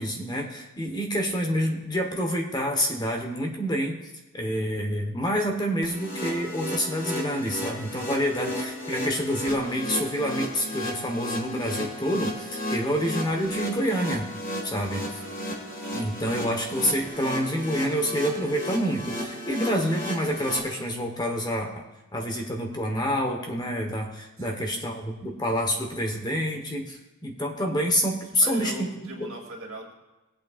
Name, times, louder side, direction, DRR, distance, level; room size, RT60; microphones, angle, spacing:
voice 1, 0.0-4.0 4.3-14.3 14.6-15.2 15.9-21.8 22.1-28.9 29.2-29.3, equal, 20° left, 2 dB, 1.2 m, -27 dB
sound 1, 5.8-20.6, equal, 40° left, 1.8 m, -34 dB
voice 2, 15.2-15.8 24.4-25.0 28.4-29.9, right 1 dB, 75° right, -2 dB, 2.5 m, -41 dB
19.0 x 8.4 x 2.5 m, 1.1 s
head